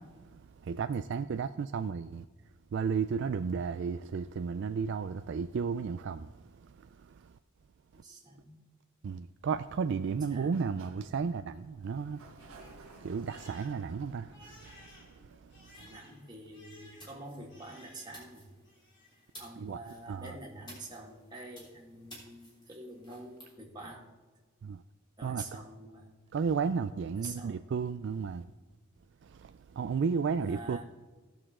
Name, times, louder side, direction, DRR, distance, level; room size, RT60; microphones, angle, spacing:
voice 1, 0.0-2.3 2.7-7.4 7.9-8.0 9.0-16.0 19.6-19.8 20.1-20.4 24.6-24.8 25.2-25.6 26.3-28.5 29.2-30.8, right 5 dB, 55° right, 0.3 m, -34 dB
voice 2, 7.9-8.6 10.3-10.5 15.7-18.5 19.4-24.1 25.2-26.1 27.2-27.6 30.5-30.8, right 2 dB, 20° right, 2.2 m, -46 dB
Sliding door, 10.3-16.0, right 3 dB, 85° right, 1.2 m, -56 dB
Crying sobbing, 11.5-18.4 18.6-19.3, left 1 dB, 55° left, 3.0 m, -58 dB
sound 1, 15.6-23.5, equal, 20° left, 3.6 m, -56 dB
17.5 x 6.7 x 3.7 m
head